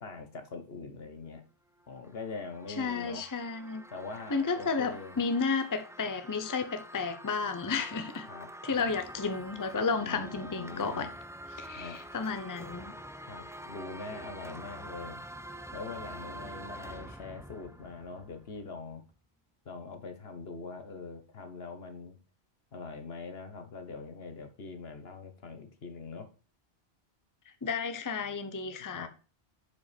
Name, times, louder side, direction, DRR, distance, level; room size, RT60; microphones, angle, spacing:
voice 1, 0.0-1.4 1.9-3.2 3.9-5.2 8.3-8.5 9.9-11.1 11.8-12.0 13.3-15.2 15.7-19.0 19.6-22.2 22.7-26.3 28.9-29.1, left 4 dB, 70° left, 1.5 m, -43 dB
sound 1, 1.8-18.8, right 1 dB, 5° right, 0.3 m, -46 dB
voice 2, 2.8-3.8 4.3-8.3 8.6-11.1 11.6-12.9 27.6-29.1, left 4 dB, 20° left, 0.7 m, -32 dB
7.0 x 5.3 x 5.1 m
omnidirectional pair, 1.1 m